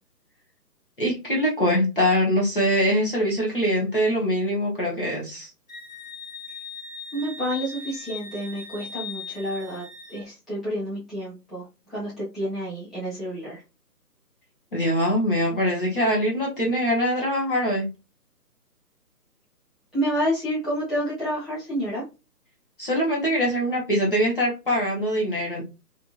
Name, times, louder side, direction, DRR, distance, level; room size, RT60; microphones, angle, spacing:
voice 1, 1.0-5.5 14.7-17.9 22.8-25.6, equal, 35° left, -4 dB, 0.8 m, -23 dB
Wind instrument woodwind instrument, 5.7-10.2, left 4 dB, 55° left, 1.1 m, -39 dB
voice 2, 7.1-9.8 10.1-13.6 19.9-22.0, equal, ahead, -11 dB, 0.5 m, -29 dB
2.6 x 2.6 x 2.2 m, 0.28 s
hypercardioid pair, 170°, 47 cm